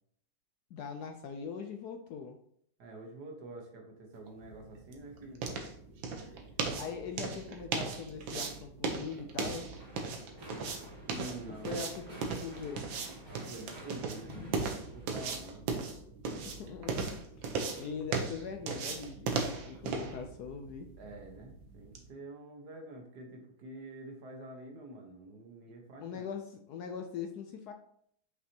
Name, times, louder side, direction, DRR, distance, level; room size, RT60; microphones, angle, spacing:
voice 1, 0.7-2.4 6.8-9.7 11.6-12.9 16.4-20.9 26.0-27.7, left 6 dB, 70° left, 5 dB, 1.0 m, -42 dB
voice 2, 2.8-5.5 11.1-11.9 13.3-15.7 21.0-26.3, right 2 dB, 60° right, 2 dB, 1.7 m, -47 dB
sound 1, 4.3-22.1, right 4 dB, 85° right, 1.7 m, -38 dB
sound 2, 9.7-15.2, equal, 20° right, 2.1 m, -50 dB
6.3 x 5.8 x 2.9 m, 0.65 s
omnidirectional pair, 2.1 m